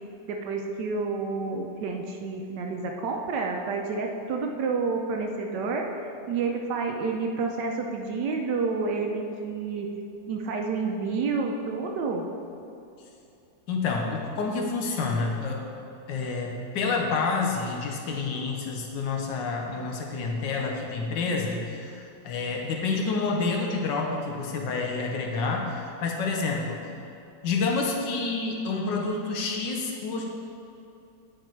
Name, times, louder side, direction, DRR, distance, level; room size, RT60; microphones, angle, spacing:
voice 1, 0.3-9.9 10.3-12.3, right 4 dB, 70° right, 2 dB, 1.1 m, -29 dB
voice 2, 13.7-15.6 16.1-26.8 27.4-30.2, left 4 dB, 70° left, 0 dB, 1.4 m, -28 dB
8.9 x 4.9 x 4.5 m, 2.7 s
omnidirectional pair, 2.1 m